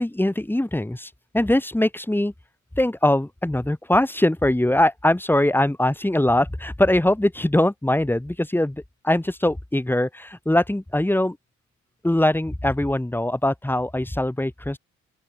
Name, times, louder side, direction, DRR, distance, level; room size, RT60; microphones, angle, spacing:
voice 1, 0.0-2.3 2.8-11.4 12.0-14.8, left 1 dB, 5° left, 4.8 m, -22 dB
open air
cardioid pair, 90°, 30 cm